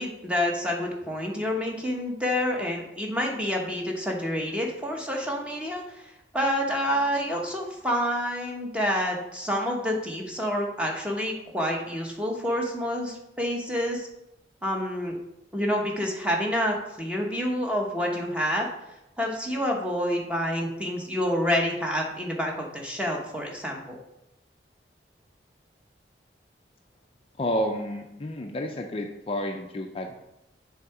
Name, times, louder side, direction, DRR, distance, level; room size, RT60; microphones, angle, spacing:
voice 1, 0.0-14.1 14.6-15.2 15.5-18.7 19.2-24.0, equal, 5° right, 0 dB, 0.9 m, -28 dB
voice 2, 27.4-30.2, equal, 30° left, 3 dB, 0.4 m, -30 dB
7.3 x 3.5 x 4.8 m, 0.88 s
head